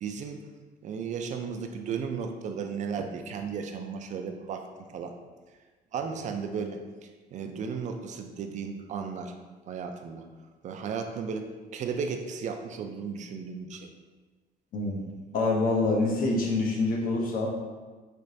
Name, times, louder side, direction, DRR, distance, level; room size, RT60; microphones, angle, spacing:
voice 1, 0.0-0.4 0.8-5.2 5.9-9.3 9.7-10.3 10.6-11.5 11.7-13.9, right 6 dB, 45° right, 5 dB, 0.4 m, -35 dB
voice 2, 15.3-17.5, left 2 dB, 55° left, -1 dB, 0.8 m, -26 dB
3.3 x 2.9 x 2.7 m, 1.3 s
cardioid pair, 110°, 17 cm